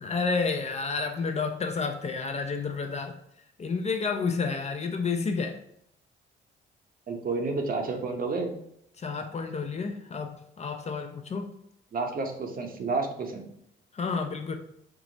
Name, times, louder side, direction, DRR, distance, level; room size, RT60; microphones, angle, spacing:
voice 1, 0.0-3.2 3.6-5.6 9.0-11.5 13.9-14.6, left 4 dB, 35° left, 6 dB, 0.5 m, -30 dB
voice 2, 7.1-8.5 11.9-13.4, right 3 dB, 45° right, 3 dB, 0.8 m, -30 dB
4.7 x 2.0 x 3.8 m, 0.73 s
cardioid pair, 90°, 20 cm